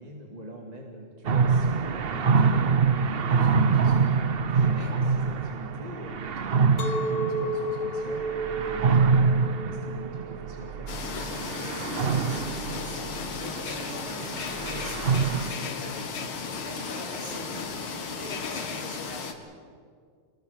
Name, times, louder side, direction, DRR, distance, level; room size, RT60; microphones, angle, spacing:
voice 1, 0.0-10.9, right 1 dB, 20° right, 0 dB, 2.1 m, -44 dB
sound 1, 1.3-15.5, right 5 dB, 80° right, 0.5 m, -25 dB
voice 2, 4.5-4.9 11.4-19.4, equal, 45° right, -4 dB, 6.4 m, -43 dB
Chink clink, 6.8-12.0, right 1 dB, 55° left, 1.6 m, -33 dB
sound 2, 10.9-19.3, left 5 dB, 85° left, 2.5 m, -35 dB
27.5 x 20.0 x 6.6 m, 2.1 s
omnidirectional pair, 2.3 m